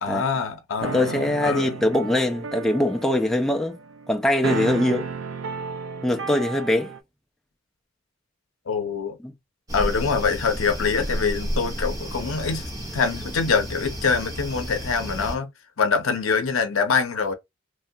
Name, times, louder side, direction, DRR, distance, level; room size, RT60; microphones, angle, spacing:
voice 1, 0.0-1.8 8.7-9.2 9.7-15.5 15.8-17.3, left 5 dB, 85° left, 0.6 m, -24 dB
voice 2, 0.8-3.8 4.1-5.1 6.0-6.9 9.2-9.3, left 1 dB, ahead, 0.3 m, -22 dB
sound 1, 0.8-7.0, right 5 dB, 75° right, 0.5 m, -33 dB
sound 2, 9.7-15.4, equal, 15° right, 0.7 m, -32 dB
3.2 x 2.2 x 2.7 m
head